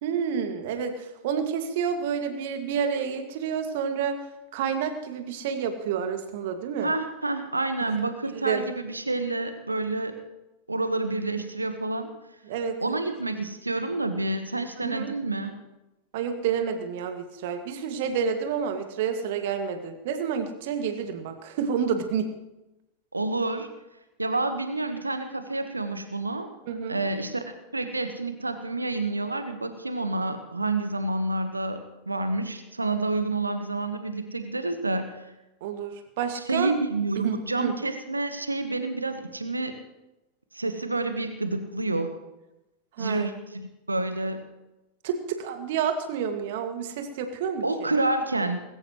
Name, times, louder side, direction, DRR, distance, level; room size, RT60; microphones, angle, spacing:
voice 1, 0.0-4.2 4.5-6.9 7.8-8.0 8.3-8.6 12.5-13.0 14.8-15.1 16.1-22.3 26.7-27.0 35.6-36.7 37.2-37.7 43.0-43.3 45.0-47.9, right 7 dB, 50° right, 6 dB, 2.1 m, -29 dB
voice 2, 6.8-10.2 10.7-12.1 12.8-15.6 23.1-23.7 24.2-26.5 26.9-27.4 27.7-35.3 36.3-39.8 40.5-42.2 43.0-44.4 47.6-48.6, right 2 dB, 80° right, 8 dB, 1.3 m, -29 dB
20.5 x 17.0 x 3.2 m, 0.98 s
figure-of-eight pair, 90°, 0 cm